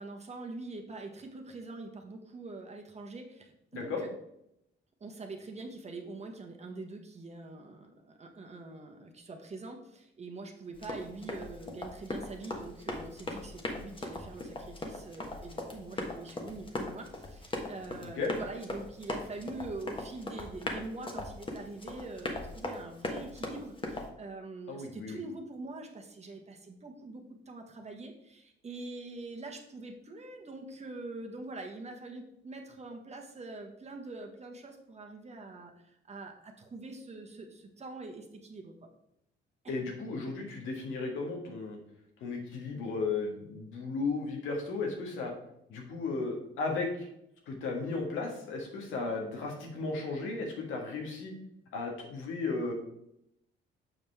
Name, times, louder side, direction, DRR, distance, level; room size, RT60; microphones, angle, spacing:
voice 1, 0.0-4.1 5.0-38.7 39.6-39.8 49.0-49.2, right 3 dB, 35° right, 2 dB, 1.3 m, -44 dB
Run, 10.7-24.1, left 2 dB, 25° left, 1.3 m, -39 dB
voice 2, 24.7-25.2 39.7-41.8 42.2-45.3 45.7-47.1 47.5-51.3 51.7-52.7, left 3 dB, 85° left, 1 dB, 1.7 m, -35 dB
7.2 x 5.2 x 3.5 m, 0.78 s
cardioid pair, 90°, 20 cm